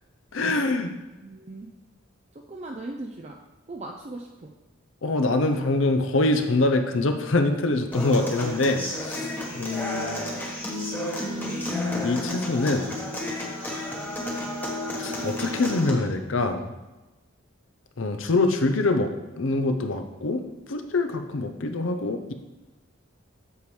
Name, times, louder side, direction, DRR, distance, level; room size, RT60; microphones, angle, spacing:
voice 1, 0.3-0.9 5.0-10.3 12.0-12.9 15.0-16.7 18.0-19.1 19.4-20.4 20.7-22.3, left 2 dB, 70° left, 6 dB, 0.6 m, -24 dB
voice 2, 1.2-1.7 2.3-3.4 3.7-4.5, right 2 dB, 30° right, 1 dB, 0.4 m, -38 dB
Human voice / Acoustic guitar, 7.9-15.9, left 1 dB, 10° left, 1.0 m, -31 dB
8.0 x 6.9 x 3.2 m, 1.1 s
head